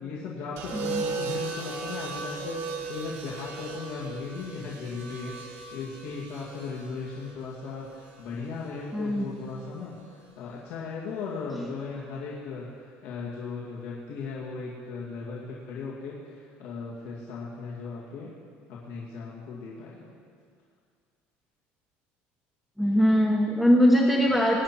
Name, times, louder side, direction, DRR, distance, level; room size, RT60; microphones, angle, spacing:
voice 1, 0.0-18.3 18.7-20.1, left 4 dB, 70° left, -6 dB, 2.3 m, -37 dB
sound 1, 0.6-8.7 9.9-10.3, right 4 dB, 65° right, 2.0 m, -37 dB
voice 2, 0.7-1.0 8.9-9.3 11.6-11.7 22.8-24.6, equal, ahead, -3 dB, 1.0 m, -21 dB
19.5 x 10.0 x 4.5 m, 2.2 s
cardioid pair, 170°, 4 cm